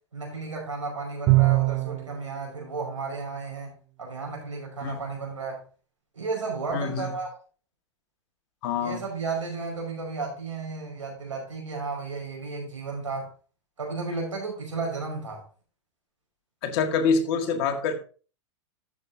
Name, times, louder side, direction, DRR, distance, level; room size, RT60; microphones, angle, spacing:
voice 1, 0.1-3.7 4.0-5.6 6.1-7.3 8.8-13.3 13.8-15.4, right 4 dB, 85° right, 0 dB, 5.3 m, -33 dB
Bowed string instrument, 1.3-2.2, right 24 dB, 40° right, 0.5 m, -20 dB
voice 2, 6.7-7.1 8.6-9.0 16.6-18.0, left 5 dB, 55° left, 6 dB, 1.8 m, -26 dB
13.0 x 7.5 x 2.7 m, 0.38 s
figure-of-eight pair, 95°, 16 cm